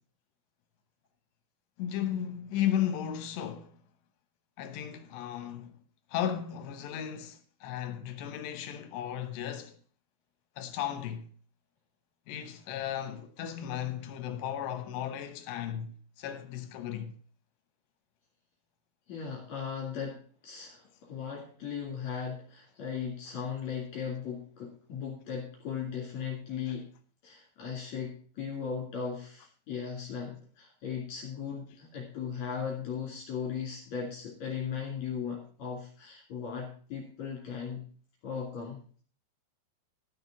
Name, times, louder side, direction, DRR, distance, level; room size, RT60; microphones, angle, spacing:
voice 1, 1.8-3.8 4.6-5.8 6.1-9.7 10.6-11.3 12.3-17.1, left 10 dB, 75° left, 2.9 m, -35 dB
voice 2, 19.1-26.9 27.2-37.8 38.2-38.8, left 7 dB, 45° left, 3.2 m, -37 dB
13.0 x 6.5 x 5.9 m
omnidirectional pair, 5.5 m